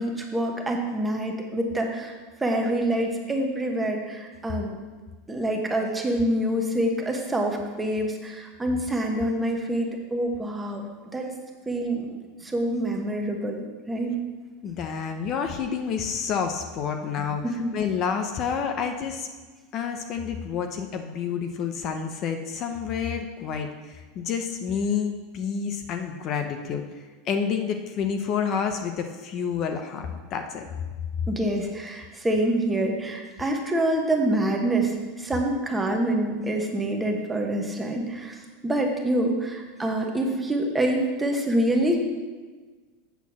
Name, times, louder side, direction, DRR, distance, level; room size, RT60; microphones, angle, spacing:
voice 1, 0.0-4.8 5.3-10.9 11.1-11.3 11.7-14.1 17.2-17.7 31.3-42.0, right 1 dB, 10° right, 2 dB, 1.1 m, -26 dB
voice 2, 14.6-17.4 17.7-19.3 19.7-26.8 27.3-30.7, left 6 dB, 40° left, 6 dB, 0.7 m, -29 dB
8.1 x 4.4 x 7.2 m, 1.4 s
supercardioid pair, 135°, 0 cm